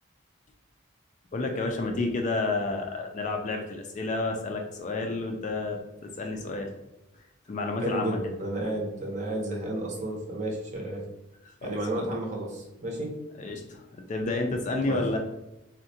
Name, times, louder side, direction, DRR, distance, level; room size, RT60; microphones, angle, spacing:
voice 1, 1.3-6.7 7.5-8.2 11.5-12.1 13.4-15.2, left 2 dB, 35° left, 3 dB, 0.3 m, -30 dB
voice 2, 7.8-11.0 11.6-13.2 14.9-15.0, right 1 dB, 35° right, -1 dB, 0.6 m, -32 dB
3.6 x 2.1 x 2.6 m, 0.94 s
head